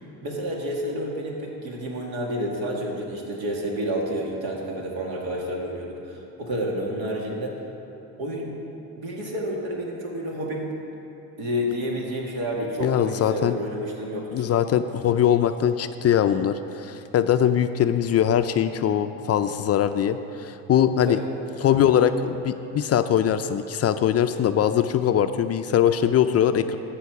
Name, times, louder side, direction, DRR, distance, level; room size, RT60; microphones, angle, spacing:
voice 1, 0.2-7.6 8.2-8.5 8.9-10.7 11.4-14.5 21.1-21.3, equal, 70° right, -1 dB, 2.1 m, -30 dB
voice 2, 12.8-13.6 14.3-21.2 21.6-26.8, left 9 dB, 40° left, 10 dB, 0.4 m, -22 dB
14.5 x 5.7 x 4.7 m, 3.0 s
supercardioid pair, 85°, 39 cm